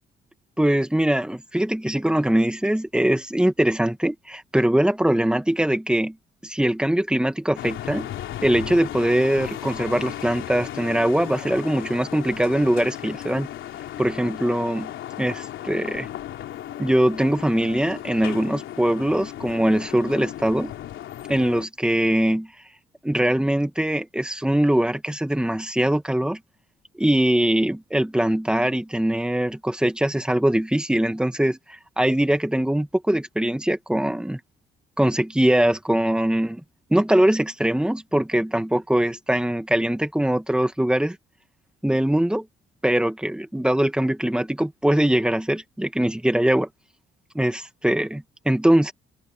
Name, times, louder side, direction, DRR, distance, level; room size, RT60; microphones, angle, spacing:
voice 1, 0.6-6.1 6.4-8.1 8.4-13.5 14.0-14.9 15.2-16.1 16.8-20.7 21.3-22.5 23.0-26.4 27.0-34.4 35.0-36.6 36.9-41.2 41.8-42.5 42.8-46.7 47.4-48.9, right 1 dB, 5° right, 1.9 m, -22 dB
sound 1, 7.6-21.7, left 12 dB, 80° left, 3.3 m, -35 dB
cardioid pair, 90°, 20 cm